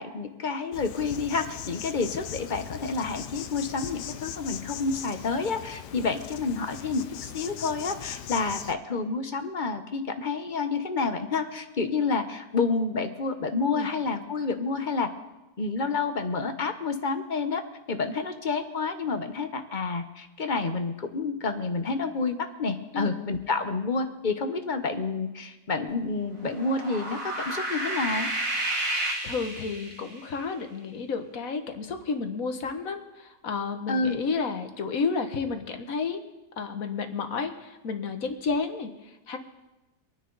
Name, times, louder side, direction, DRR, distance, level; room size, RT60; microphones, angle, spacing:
voice 1, 0.0-15.1 15.6-17.6 17.9-28.3 33.9-34.2, left 4 dB, 40° left, 8 dB, 0.7 m, -29 dB
Insect, 0.7-8.7, left 10 dB, 75° left, 1.3 m, -39 dB
sound 1, 26.4-30.2, right 1 dB, 50° right, 2.5 m, -31 dB
voice 2, 29.2-36.2 36.6-39.4, left 4 dB, 55° left, 7 dB, 1.4 m, -31 dB
25.0 x 9.9 x 3.9 m, 1.0 s
omnidirectional pair, 1.9 m